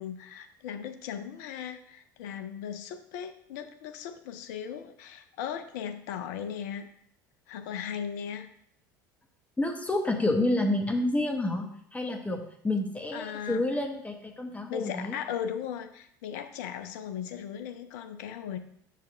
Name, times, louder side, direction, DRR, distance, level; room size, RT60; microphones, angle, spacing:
voice 1, 0.0-6.9 7.5-8.5 13.1-13.6 14.7-18.6, left 8 dB, 55° left, 8 dB, 0.7 m, -37 dB
voice 2, 9.6-11.7 11.9-15.2, left 2 dB, 10° left, 3 dB, 1.2 m, -29 dB
7.7 x 6.7 x 3.4 m, 0.68 s
figure-of-eight pair, 70°, 11 cm